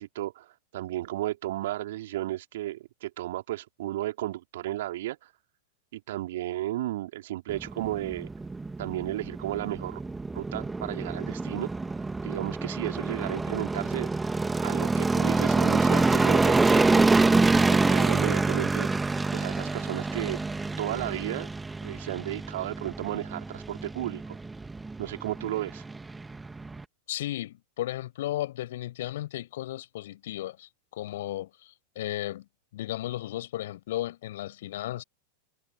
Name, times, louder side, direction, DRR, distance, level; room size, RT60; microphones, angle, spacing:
voice 1, 0.0-5.3 5.9-8.3 8.8-10.0 10.3-11.7 12.2-14.1 14.6-17.1 17.7-19.0 19.3-20.4 20.8-21.5 21.8-24.4 25.0-25.8, right 15 dB, 55° right, 3.3 m, -34 dB
sound 1, 7.5-26.8, right 3 dB, 10° right, 1.9 m, -26 dB
voice 2, 27.1-32.5 32.7-35.0, left 14 dB, 55° left, 6.3 m, -34 dB
figure-of-eight pair, 90°, 0 cm